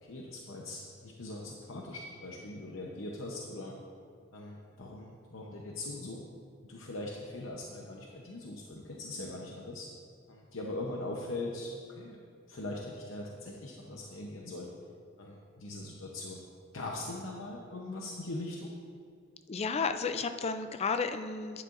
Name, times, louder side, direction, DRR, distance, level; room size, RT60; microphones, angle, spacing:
voice 1, 0.0-3.7 4.3-6.2 6.6-9.9 10.3-12.2 12.5-14.7 15.2-16.4 16.7-18.8, left 2 dB, 70° left, -1 dB, 0.8 m, -41 dB
voice 2, 19.5-21.6, left 5 dB, 30° left, 9 dB, 0.4 m, -32 dB
11.5 x 9.9 x 2.5 m, 2.2 s
head